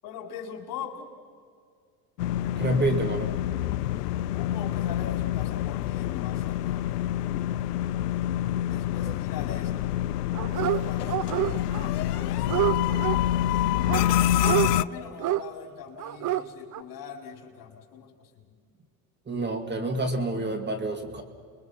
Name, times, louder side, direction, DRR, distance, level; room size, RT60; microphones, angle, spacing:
voice 1, 0.0-1.1 4.3-6.9 8.7-9.7 10.6-13.7 14.5-18.6, left 7 dB, 45° left, 2 dB, 4.8 m, -42 dB
sound 1, 2.2-14.8, left 12 dB, 85° left, 0.6 m, -27 dB
voice 2, 2.5-3.3 19.3-21.2, right 1 dB, 25° right, 5 dB, 2.3 m, -27 dB
Dog, 10.3-10.8 11.1-11.9 12.1-13.2 13.9-14.7 15.2-15.4 16.0-16.4 16.7-16.8, right 14 dB, 40° right, 0.9 m, -27 dB
29.0 x 22.5 x 5.7 m, 2.1 s
hypercardioid pair, 90°, 46 cm